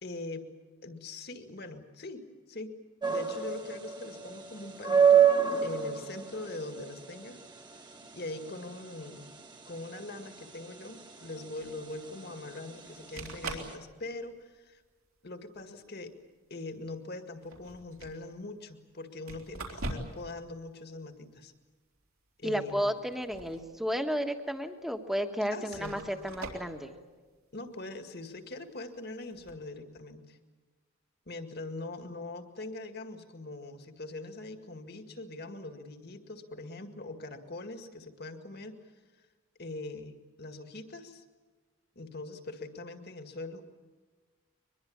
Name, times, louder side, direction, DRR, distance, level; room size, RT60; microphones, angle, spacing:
voice 1, 0.0-0.5 0.8-2.7 3.0-5.2 5.6-7.4 7.7-7.9 8.1-9.3 9.7-14.8 15.2-16.1 16.5-21.5 22.4-22.9 25.5-26.0 27.5-30.4 31.3-38.8 39.6-41.2 42.0-43.6, left 2 dB, 45° left, 7 dB, 2.0 m, -42 dB
sound 1, 3.0-13.7, right 7 dB, 20° right, 1.6 m, -29 dB
sound 2, 11.6-11.7 12.9-13.0 13.2-13.8 14.2-14.6 15.6-15.7 17.4-18.2 19.3-20.3 20.6-20.7 23.0-23.7 24.1-24.2 25.0-25.1 25.7-26.7 29.3-29.5, right 2 dB, 75° right, 4.0 m, -41 dB
voice 2, 22.4-26.9, equal, ahead, 6 dB, 1.5 m, -32 dB
23.5 x 22.0 x 8.7 m, 1.4 s
head